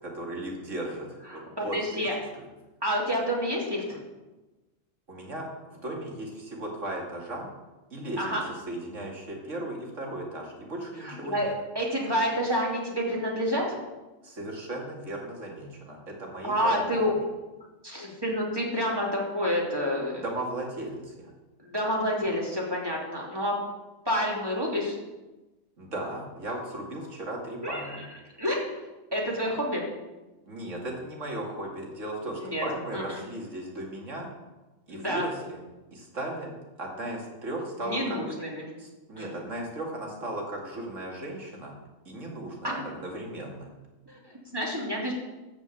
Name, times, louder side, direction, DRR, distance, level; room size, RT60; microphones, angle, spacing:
voice 1, 0.0-2.1 2.3-2.5 5.1-5.5 5.7-7.5 7.9-8.2 8.7-11.5 14.2-17.1 20.2-21.3 25.8-28.0 30.5-34.3 34.9-35.6 35.9-36.5 36.8-38.2 38.8-41.7 42.1-43.7, right 1 dB, 65° right, -1 dB, 2.8 m, -36 dB
voice 2, 1.3-2.1 2.8-4.0 8.2-8.4 11.0-11.5 11.7-13.7 16.4-17.1 17.8-20.2 21.6-23.6 24.0-25.0 27.6-28.0 28.4-28.7 29.1-29.8 32.4-32.6 32.9-33.2 34.9-35.2 37.8-38.6 39.2-39.4 42.6-42.8 44.1-45.1, equal, 15° right, -3 dB, 2.8 m, -29 dB
13.0 x 5.4 x 8.4 m, 1.1 s
omnidirectional pair, 1.4 m